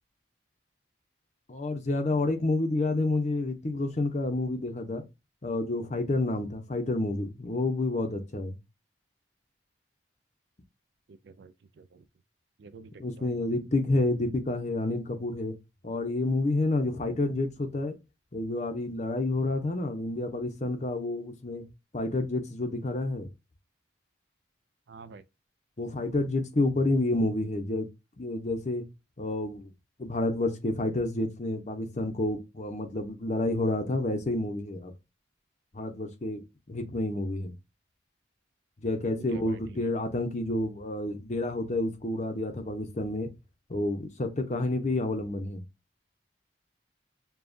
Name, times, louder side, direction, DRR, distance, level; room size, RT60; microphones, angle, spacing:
voice 1, 1.5-5.0 5.4-8.6 13.0-15.5 15.8-17.9 18.3-21.6 21.9-23.3 25.8-27.9 28.2-28.8 29.2-29.7 30.0-34.9 35.7-36.4 36.7-37.5 38.8-43.3 43.7-45.6, left 2 dB, 35° left, 0.7 m, -29 dB
voice 2, 11.1-12.0 12.6-13.5 24.9-25.2 39.1-39.9, right 4 dB, 60° right, 0.4 m, -49 dB
6.9 x 2.3 x 2.5 m
head